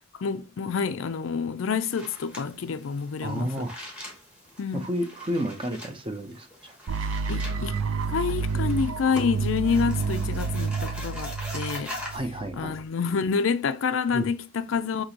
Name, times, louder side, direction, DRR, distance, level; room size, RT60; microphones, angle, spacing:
voice 1, 0.1-3.6 4.6-4.9 7.3-7.8 8.1-12.0 12.5-15.0, left 5 dB, 65° left, 0.4 m, -28 dB
sound 1, 1.9-12.2, left 1 dB, 5° right, 1.0 m, -42 dB
voice 2, 3.2-3.8 4.7-6.7 12.1-12.8 14.1-14.3, equal, 25° right, 0.6 m, -31 dB
sound 2, 6.9-12.8, right 5 dB, 65° right, 0.5 m, -29 dB
6.0 x 2.8 x 2.8 m
head